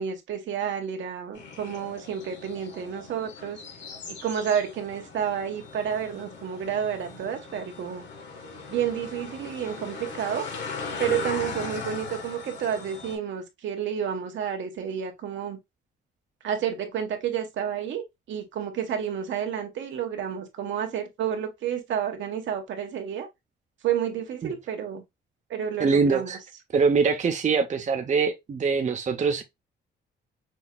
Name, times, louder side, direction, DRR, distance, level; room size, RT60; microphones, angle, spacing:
voice 1, 0.0-3.6 4.1-8.1 8.7-10.5 11.0-15.6 16.4-18.0 18.3-23.3 23.8-25.0 25.5-26.3, right 8 dB, 70° right, 1.5 m, -30 dB
sound 1, 1.3-13.2, left 4 dB, 65° left, 2.3 m, -39 dB
voice 2, 25.8-26.4 26.7-29.4, right 5 dB, 40° right, 0.9 m, -23 dB
6.1 x 2.8 x 2.4 m
cardioid pair, 90°, 20 cm